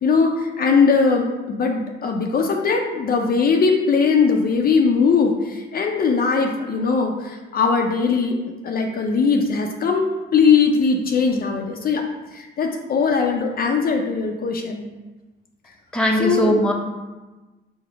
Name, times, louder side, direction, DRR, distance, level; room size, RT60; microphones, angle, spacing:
voice 1, 0.0-10.1 10.3-12.0 12.3-14.9 16.2-16.6, left 5 dB, 50° left, 2 dB, 0.5 m, -20 dB
voice 2, 15.9-16.7, equal, 5° left, 0 dB, 0.7 m, -19 dB
5.0 x 2.1 x 4.7 m, 1.2 s
cardioid pair, 90°, 20 cm